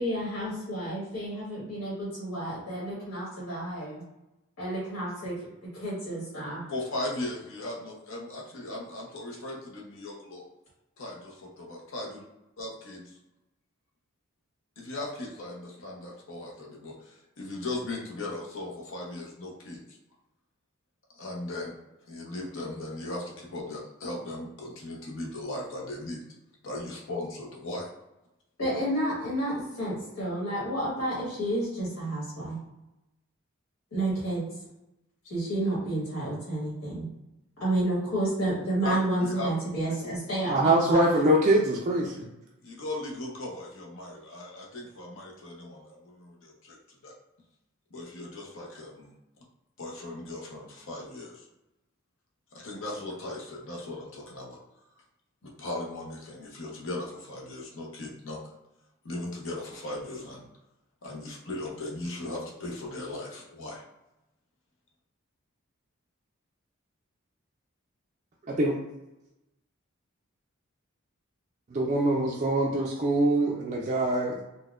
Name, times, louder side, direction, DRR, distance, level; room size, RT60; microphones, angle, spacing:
voice 1, 0.0-4.0 4.6-6.6 28.6-32.6 33.9-34.4 35.2-37.1 37.6-41.1, right 1 dB, 85° left, -7 dB, 1.4 m, -30 dB
voice 2, 6.7-10.4 11.0-12.2 12.6-13.2 14.8-19.8 21.1-21.7 22.1-26.2 26.6-27.9 38.8-39.5 39.9-40.2 40.5-40.6 42.6-47.1 47.9-49.1 49.8-51.5 52.5-54.6 55.4-58.5 59.0-60.5 61.0-63.8, left 2 dB, 65° left, -2 dB, 0.8 m, -38 dB
voice 3, 40.5-42.3 68.5-68.7 71.7-74.4, right 1 dB, 35° right, -2 dB, 0.4 m, -24 dB
4.0 x 2.1 x 2.4 m, 0.94 s
head